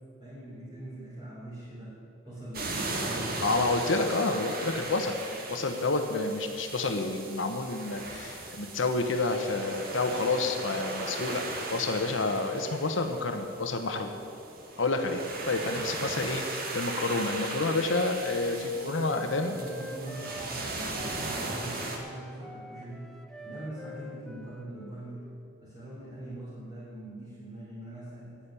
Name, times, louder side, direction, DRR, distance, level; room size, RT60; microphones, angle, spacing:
voice 1, 0.2-2.0 2.2-3.5 18.9-19.2 19.5-23.1 23.4-25.3 25.6-28.4, right 1 dB, 25° right, -10 dB, 3.5 m, -42 dB
sound 1, 2.5-22.0, right 2 dB, 50° right, 1.9 m, -38 dB
voice 2, 3.4-5.2 5.5-11.4 11.7-14.1 14.8-19.5, left 3 dB, 90° left, 5 dB, 1.0 m, -29 dB
Wind instrument woodwind instrument, 18.1-25.6, equal, ahead, 0.7 m, -47 dB
10.0 x 8.7 x 9.8 m, 2.5 s
head